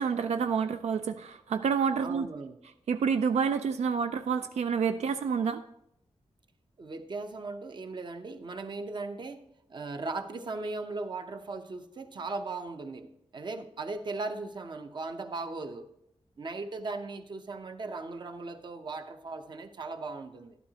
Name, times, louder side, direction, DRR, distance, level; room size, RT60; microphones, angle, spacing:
voice 1, 0.0-2.3 2.9-5.6, right 6 dB, 85° right, 9 dB, 0.4 m, -28 dB
voice 2, 2.0-2.6 6.8-9.4 9.7-13.1 13.3-15.9 16.4-20.6, right 3 dB, 45° right, 7 dB, 0.8 m, -38 dB
12.0 x 12.0 x 2.8 m, 0.78 s
wide cardioid pair, 165°, 11 cm